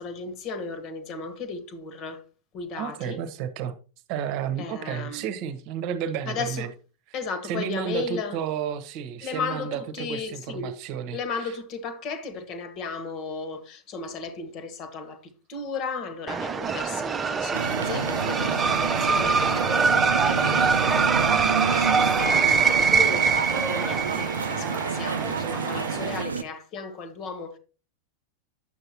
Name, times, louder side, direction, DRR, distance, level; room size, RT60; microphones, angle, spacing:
voice 1, 0.0-2.2 2.5-3.2 4.6-5.3 6.2-6.7 7.1-8.4 9.2-10.7 11.1-27.6, left 4 dB, 40° left, 1.6 m, -35 dB
voice 2, 2.8-3.8 4.1-6.7 7.4-11.5, right 8 dB, 45° right, 1.1 m, -32 dB
sound 1, 16.3-26.2, right 5 dB, 20° right, 0.7 m, -24 dB
sound 2, 17.5-26.4, right 5 dB, 75° right, 0.6 m, -29 dB
10.5 x 7.8 x 2.9 m
figure-of-eight pair, 90°, 0 cm